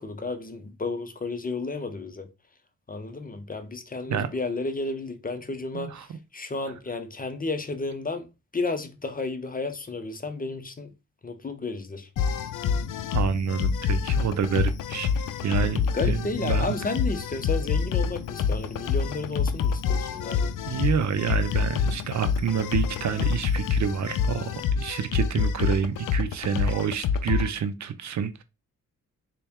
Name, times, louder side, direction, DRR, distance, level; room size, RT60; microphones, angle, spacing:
voice 1, 0.0-2.3 2.9-8.3 8.5-10.9 11.2-12.1 15.8-20.5, left 3 dB, 25° left, 0.7 m, -32 dB
voice 2, 5.7-6.2 13.1-16.8 20.7-28.4, right 7 dB, 55° right, 0.5 m, -28 dB
sound 1, 12.2-27.5, left 6 dB, 65° left, 0.5 m, -27 dB
4.0 x 2.2 x 3.5 m
cardioid pair, 65°, 34 cm